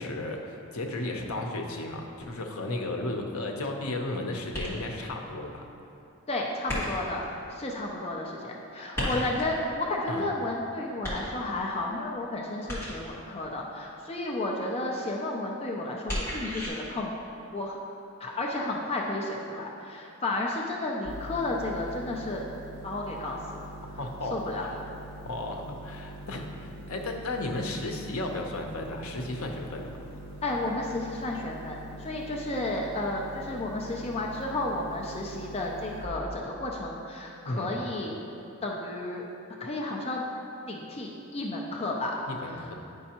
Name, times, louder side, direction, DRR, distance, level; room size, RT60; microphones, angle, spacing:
voice 1, 0.0-5.6 9.0-9.3 10.1-10.3 24.0-24.8 25.2-30.0 37.4-37.7 42.3-42.7, left 2 dB, 75° left, 2 dB, 0.7 m, -34 dB
sound 1, 4.5-5.1 6.7-7.3 8.9-9.6 11.0-11.7 12.7-13.2 16.1-16.7, equal, 10° left, 1.4 m, -33 dB
voice 2, 6.3-7.2 7.5-17.1 17.5-17.8 18.2-22.4 22.8-23.4 24.3-24.7 30.4-38.2 38.6-39.2 39.6-40.2 40.7-42.1 42.4-42.7, left 2 dB, 25° left, -1 dB, 0.5 m, -32 dB
sound 2, 21.0-36.1, right 1 dB, 55° right, 1.5 m, -44 dB
9.2 x 5.4 x 2.9 m, 2.7 s
head